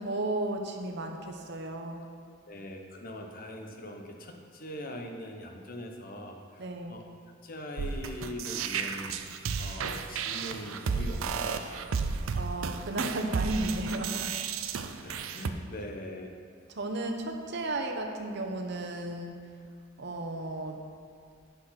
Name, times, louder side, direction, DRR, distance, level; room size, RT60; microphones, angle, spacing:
voice 1, 0.0-2.0 6.6-7.0 12.3-14.3 16.7-19.3 20.0-20.8, right 2 dB, 55° right, 4 dB, 0.9 m, -34 dB
voice 2, 2.5-7.0 7.4-9.1 9.6-12.0 15.0-16.3, equal, 45° left, 3 dB, 0.9 m, -41 dB
sound 1, 7.8-15.5, right 5 dB, 85° right, 0.5 m, -33 dB
9.0 x 6.1 x 5.8 m, 2.3 s
head